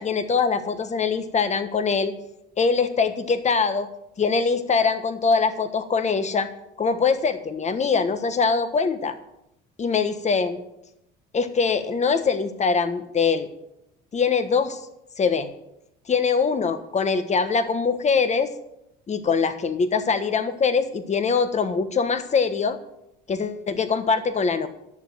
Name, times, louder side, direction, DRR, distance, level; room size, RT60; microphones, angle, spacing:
voice 1, 0.0-2.1 2.6-3.9 4.2-6.5 6.8-9.2 9.8-10.6 11.3-13.5 14.1-14.8 15.2-15.5 16.1-18.5 19.1-22.8 23.3-24.7, left 5 dB, 35° left, 10 dB, 1.4 m, -23 dB
11.0 x 7.1 x 7.6 m, 0.81 s
supercardioid pair, 85°, 21 cm